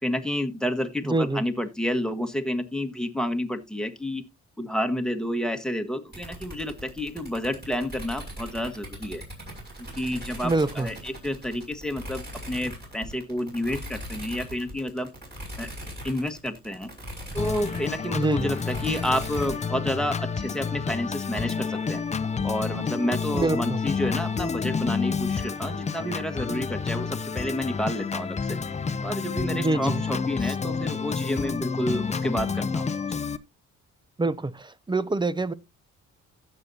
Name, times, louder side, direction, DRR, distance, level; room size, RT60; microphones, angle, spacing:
voice 1, 0.0-4.2 4.6-9.2 10.0-15.1 15.6-15.7 16.0-16.9 17.3-22.0 22.4-28.6 29.0-33.2, left 1 dB, ahead, 1.4 m, -30 dB
voice 2, 1.1-1.4 10.4-10.9 18.1-18.5 23.3-23.8 29.5-30.0 34.2-35.5, right 2 dB, 15° right, 0.6 m, -25 dB
sound 1, 6.1-19.6, equal, 35° right, 6.4 m, -40 dB
Organ, 17.4-33.4, left 5 dB, 25° left, 0.6 m, -29 dB
15.5 x 6.8 x 2.8 m
cardioid pair, 90°, 30 cm